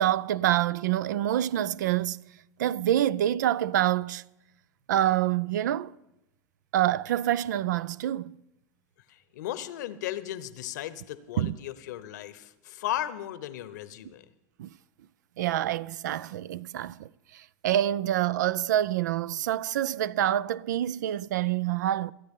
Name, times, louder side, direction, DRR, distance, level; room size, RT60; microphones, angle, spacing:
voice 1, 0.0-2.2 2.6-4.2 4.9-5.9 6.7-8.4 11.4-11.6 14.6-14.7 15.4-22.1, right 12 dB, 75° right, 0.4 m, -27 dB
voice 2, 9.1-14.2, left 13 dB, 75° left, 0.9 m, -36 dB
27.0 x 9.2 x 3.7 m
hypercardioid pair, 90°, 10 cm